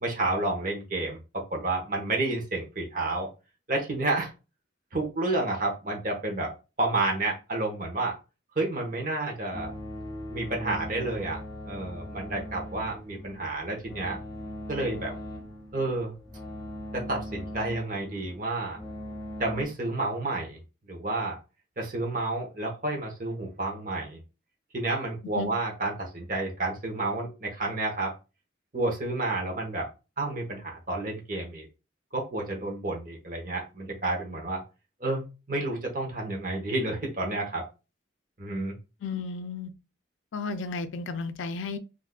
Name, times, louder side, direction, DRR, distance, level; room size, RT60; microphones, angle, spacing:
voice 1, 0.0-3.3 3.7-4.3 4.9-6.5 6.8-8.1 8.6-9.7 10.3-11.4 11.7-14.2 14.7-15.1 15.7-16.1 16.9-18.8 19.4-20.6 20.9-21.4 21.8-24.2 24.7-28.1 28.7-29.9 30.2-31.6 32.1-34.6 35.0-37.6 38.4-38.7, right 2 dB, 45° right, 0.9 m, -30 dB
sound 1, 9.5-19.7, equal, 20° left, 0.7 m, -40 dB
voice 2, 39.0-39.7 40.3-41.8, left 4 dB, 85° left, 0.4 m, -33 dB
3.6 x 2.5 x 2.3 m
head